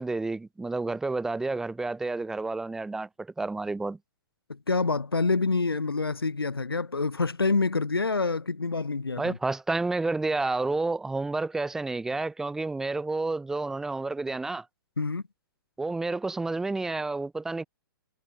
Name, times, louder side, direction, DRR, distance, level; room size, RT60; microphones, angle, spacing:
voice 1, 0.0-4.0 9.2-14.7 15.8-17.6, right 3 dB, 5° right, 0.3 m, -30 dB
voice 2, 4.5-9.4 15.0-15.2, left 3 dB, 85° left, 0.8 m, -27 dB
figure-of-eight pair, 120°, 12 cm